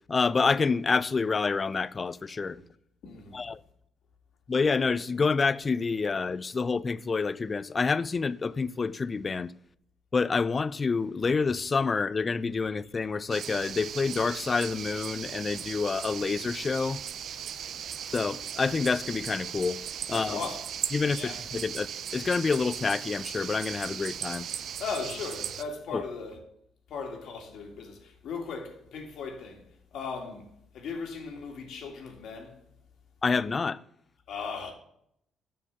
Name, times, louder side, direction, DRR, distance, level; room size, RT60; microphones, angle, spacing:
voice 1, 0.1-2.6 3.3-3.6 4.5-9.5 10.1-17.0 18.1-19.8 20.1-20.4 20.9-21.9 22.1-24.5 25.9-26.0 33.2-33.8, left 4 dB, 35° left, 0.4 m, -28 dB
voice 2, 3.0-3.5 20.1-20.6 21.1-21.4 24.8-26.4 26.9-29.6 29.9-32.6 34.3-34.7, left 5 dB, 75° left, 2.0 m, -37 dB
sound 1, 13.3-25.6, right 9 dB, 65° right, 0.5 m, -38 dB
7.2 x 6.6 x 7.1 m
cardioid pair, 90°, 0 cm